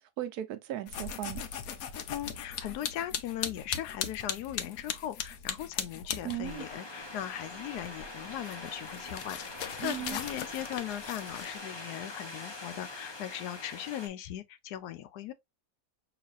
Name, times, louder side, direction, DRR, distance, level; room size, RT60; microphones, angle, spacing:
voice 1, 0.2-1.4 6.2-6.7 9.8-10.2, right 12 dB, 75° right, 1.2 m, -36 dB
sound 1, 0.9-6.7 7.0-11.6, left 8 dB, 70° left, 1.0 m, -39 dB
voice 2, 2.1-15.3, left 12 dB, 85° left, 1.1 m, -39 dB
sound 2, 6.4-14.1, left 2 dB, 25° left, 0.6 m, -43 dB
5.8 x 3.1 x 2.4 m
omnidirectional pair, 1.7 m